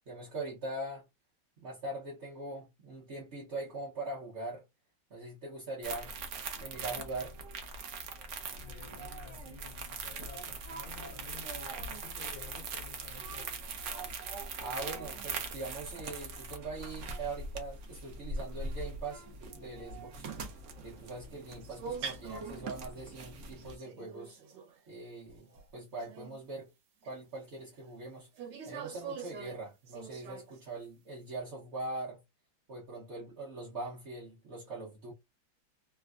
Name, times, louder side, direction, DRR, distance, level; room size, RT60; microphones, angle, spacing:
voice 1, 0.1-1.1 1.6-4.6 5.1-6.1 6.6-7.4 14.6-19.3 19.5-20.3 20.8-24.4 24.9-26.7 27.0-28.3 28.6-32.2 32.7-35.1, right 2 dB, 50° right, 0.8 m, -42 dB
sound 1, 5.8-23.8, right 3 dB, 90° right, 0.6 m, -42 dB
voice 2, 8.6-13.6, left 8 dB, 75° left, 1.2 m, -53 dB
sound 2, 21.6-22.7 23.6-24.8 25.3-25.7 25.9-26.4 27.0-27.1 28.4-30.6, right 6 dB, 70° right, 1.4 m, -43 dB
3.3 x 2.2 x 2.3 m
omnidirectional pair, 2.1 m